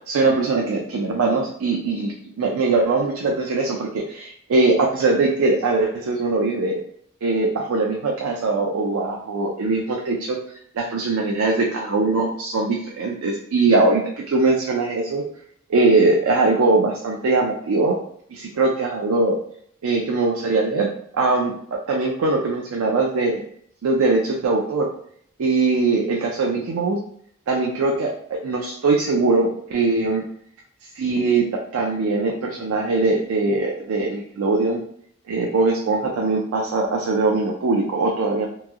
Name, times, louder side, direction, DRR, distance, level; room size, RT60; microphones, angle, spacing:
voice 1, 0.1-6.8 7.2-10.4 10.7-15.2 15.7-18.0 18.3-19.4 19.8-23.4 23.8-24.9 25.4-27.0 27.5-30.2 30.9-34.8 35.3-38.5, right 3 dB, 85° right, 0 dB, 0.4 m, -21 dB
2.9 x 2.6 x 2.4 m, 0.64 s
head